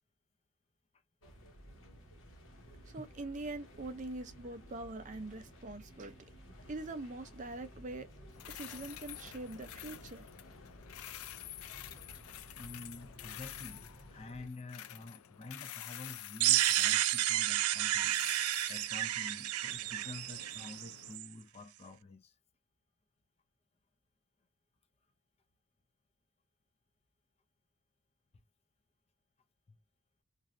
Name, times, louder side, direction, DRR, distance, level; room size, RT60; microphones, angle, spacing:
sound 1, 1.2-14.5, equal, 60° left, 1.0 m, -55 dB
voice 1, 2.8-6.3 6.7-8.1 8.5-10.3, right 2 dB, 35° right, 0.5 m, -43 dB
sound 2, 8.3-21.2, left 12 dB, 85° left, 0.4 m, -49 dB
voice 2, 12.5-18.2 18.5-22.3 29.7-29.8, left 2 dB, 30° left, 0.5 m, -49 dB
sound 3, 16.4-21.2, right 14 dB, 90° right, 0.3 m, -31 dB
3.1 x 2.4 x 2.5 m
head